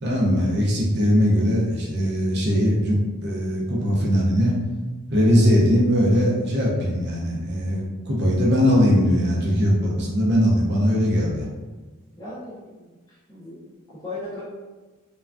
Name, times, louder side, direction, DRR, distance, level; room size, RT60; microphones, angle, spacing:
voice 1, 0.0-4.5 5.1-11.5, equal, 50° right, -4 dB, 0.6 m, -20 dB
voice 2, 12.1-14.5, left 2 dB, 20° left, -9 dB, 0.5 m, -38 dB
3.3 x 2.2 x 2.4 m, 1.3 s
head